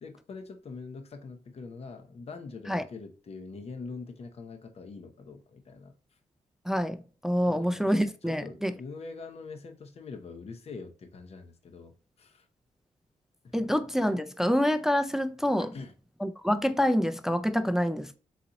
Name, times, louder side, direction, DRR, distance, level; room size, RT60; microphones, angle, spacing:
voice 1, 0.0-5.9 7.5-12.5 13.4-13.7 15.7-15.9, left 4 dB, 45° left, 0.7 m, -44 dB
voice 2, 6.7-8.7 13.5-15.7 16.2-18.2, equal, 5° right, 0.3 m, -27 dB
4.1 x 3.9 x 2.9 m
wide cardioid pair, 130°, 14 cm